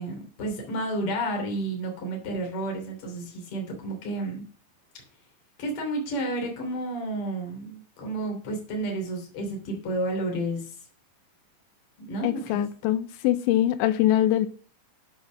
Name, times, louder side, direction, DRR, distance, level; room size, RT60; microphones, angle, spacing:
voice 1, 0.0-4.5 5.6-10.7 12.0-12.6, right 1 dB, 35° left, 2 dB, 3.3 m, -31 dB
voice 2, 12.2-14.5, left 13 dB, 85° left, 11 dB, 3.0 m, -23 dB
8.4 x 7.9 x 6.2 m, 0.40 s
omnidirectional pair, 5.3 m